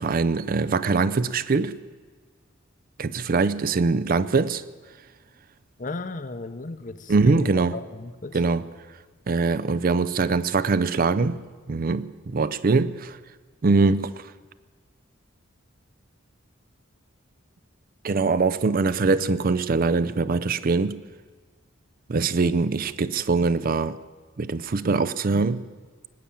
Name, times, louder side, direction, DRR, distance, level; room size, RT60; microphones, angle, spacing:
voice 1, 0.0-1.8 3.0-4.6 7.1-7.7 8.3-8.6 9.3-11.4 11.7-13.2 13.6-14.3 18.0-21.0 22.1-24.0 24.4-25.7, right 4 dB, 45° right, 0.5 m, -23 dB
voice 2, 5.8-8.4, left 3 dB, 40° left, 0.8 m, -36 dB
19.5 x 8.6 x 8.7 m
head